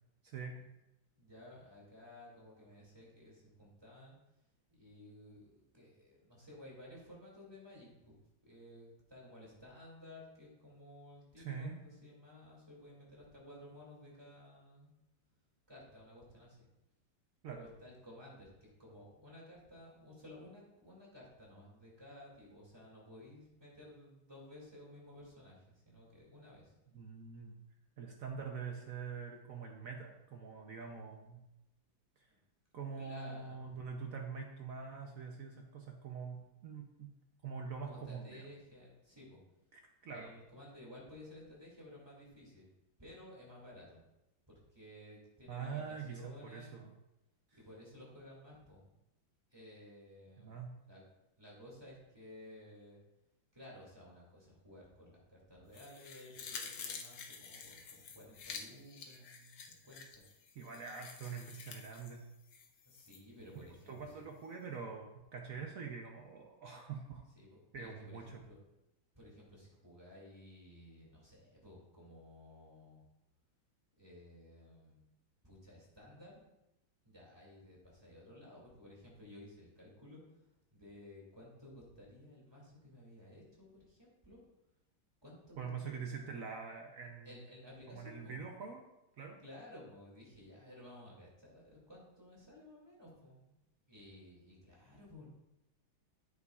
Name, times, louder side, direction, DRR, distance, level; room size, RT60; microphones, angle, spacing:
voice 1, 0.2-0.6 11.4-11.8 17.4-17.6 26.9-27.6 28.0-31.4 32.7-37.1 37.4-38.5 39.7-40.3 45.5-46.9 50.4-50.7 60.6-62.2 63.9-67.2 67.7-68.4 85.6-87.3 87.9-88.8 89.2-89.4, right 5 dB, 65° right, 2 dB, 0.9 m, -44 dB
voice 2, 1.2-4.1 4.7-8.1 8.4-14.9 15.7-16.7 17.5-26.7 32.3-32.4 32.9-33.7 37.8-39.4 40.0-42.7 43.0-44.0 44.5-46.8 47.5-48.9 49.5-50.6 50.9-51.0 51.4-53.0 53.5-60.2 62.9-64.2 67.4-68.6 69.2-73.0 74.0-75.0 75.4-76.5 77.0-84.4 85.2-86.4 87.2-88.4 89.4-93.5 93.9-95.3, left 1 dB, 15° right, -4 dB, 2.2 m, -55 dB
sound 1, 55.7-63.2 63.6-63.7, left 6 dB, 70° left, 1.4 m, -49 dB
9.6 x 8.3 x 2.4 m, 0.92 s
omnidirectional pair, 2.2 m